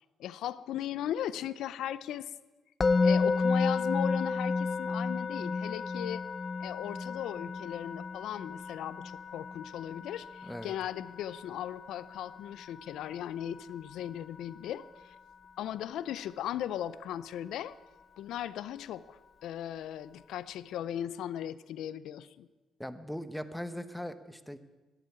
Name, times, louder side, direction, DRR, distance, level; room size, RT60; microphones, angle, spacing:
voice 1, 0.2-2.3 3.0-6.2 6.6-15.2 15.6-17.8 18.2-22.5, left 11 dB, 80° left, 17 dB, 0.5 m, -37 dB
Musical instrument, 2.8-13.9, left 4 dB, 35° left, 0.7 m, -32 dB
voice 2, 10.4-10.7 22.8-24.6, equal, 5° left, 11 dB, 1.0 m, -39 dB
13.5 x 10.5 x 9.4 m, 1.2 s
cardioid pair, 90°, 0 cm